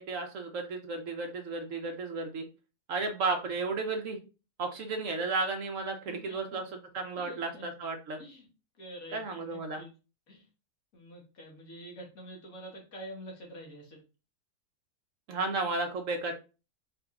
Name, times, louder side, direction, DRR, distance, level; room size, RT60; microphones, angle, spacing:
voice 1, 0.0-2.4 2.9-4.2 4.6-6.6 6.9-8.2 9.1-9.8 15.3-16.3, right 3 dB, 60° right, 4 dB, 1.0 m, -33 dB
voice 2, 6.1-6.6 7.2-7.7 8.2-8.5 8.8-9.9 10.3-10.5 10.9-14.0, equal, 65° left, -1 dB, 1.7 m, -47 dB
4.8 x 3.0 x 2.4 m, 0.31 s
omnidirectional pair, 1.6 m